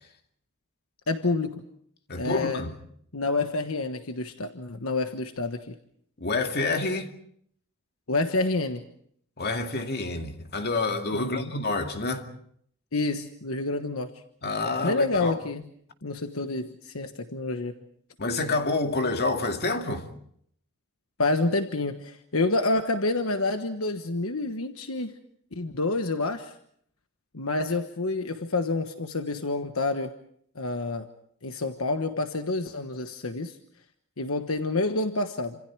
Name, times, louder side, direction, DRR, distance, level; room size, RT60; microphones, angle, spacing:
voice 1, 1.1-1.6 2.2-2.6 3.1-5.8 8.1-8.9 11.1-11.5 12.9-14.2 14.8-15.7 16.0-17.7 21.2-25.2 25.5-26.6 27.3-30.1 30.5-31.1 31.4-33.6 34.2-35.6, left 2 dB, 75° left, 1.3 m, -28 dB
voice 2, 2.1-2.7 6.2-7.1 9.4-12.3 14.4-15.4 18.2-20.1, left 3 dB, 50° left, 2.3 m, -28 dB
28.5 x 27.0 x 4.7 m
head